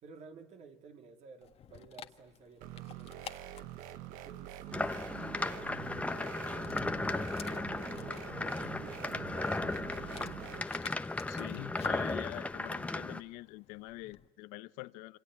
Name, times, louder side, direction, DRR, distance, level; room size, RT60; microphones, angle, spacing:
voice 1, 0.0-3.5 4.2-5.5 6.2-10.5, right 5 dB, 55° right, 4 dB, 3.6 m, -54 dB
Dog, 1.4-14.3, left 9 dB, 50° left, 1.6 m, -54 dB
sound 1, 2.6-10.6, right 12 dB, 80° right, 1.3 m, -46 dB
sound 2, 4.7-13.2, left 2 dB, 10° left, 1.1 m, -36 dB
voice 2, 11.3-15.2, left 18 dB, 85° left, 12 dB, 1.1 m, -45 dB
27.0 x 25.5 x 8.6 m, 0.90 s
cardioid pair, 105°, 14 cm